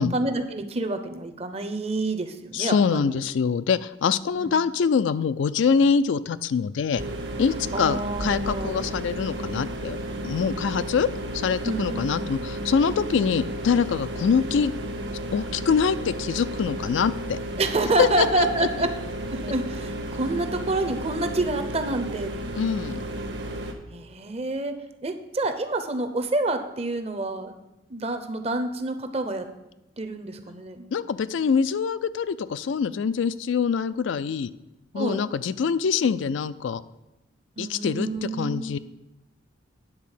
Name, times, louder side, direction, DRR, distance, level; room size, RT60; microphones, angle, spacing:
voice 1, 0.0-3.2 4.4-4.5 7.7-8.8 11.6-12.0 17.6-18.9 19.3-22.3 23.9-27.6 27.9-29.5 30.0-30.9 34.9-35.3 37.6-38.8, right 2 dB, 30° right, 7 dB, 0.7 m, -28 dB
voice 2, 2.5-7.0 7.4-10.0 10.2-11.1 11.3-14.7 15.3-17.4 18.0-18.5 22.6-23.0 30.9-34.5 34.9-36.8 37.6-38.8, left 6 dB, 75° left, 14 dB, 0.4 m, -24 dB
sound 1, 7.0-23.7, right 1 dB, 60° right, 1.1 m, -33 dB
9.6 x 4.2 x 7.2 m, 0.94 s
head